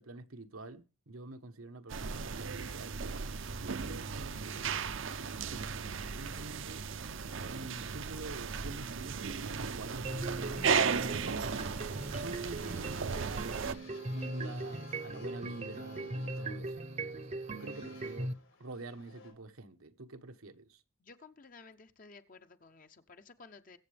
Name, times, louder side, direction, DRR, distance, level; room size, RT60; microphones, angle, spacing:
voice 1, 0.0-3.0 3.4-4.8 5.4-6.9 7.5-10.6 10.9-11.6 12.2-13.6 14.1-18.3 18.6-20.8, right 2 dB, 85° right, 1.1 m, -47 dB
sound 1, 1.9-13.7, right 5 dB, 65° right, 0.6 m, -36 dB
sound 2, 10.0-18.3, right 2 dB, 30° right, 0.7 m, -39 dB
sound 3, 11.0-19.3, left 3 dB, 85° left, 4.8 m, -56 dB
voice 2, 21.0-23.8, left 4 dB, 40° left, 0.7 m, -55 dB
22.0 x 7.7 x 3.4 m
head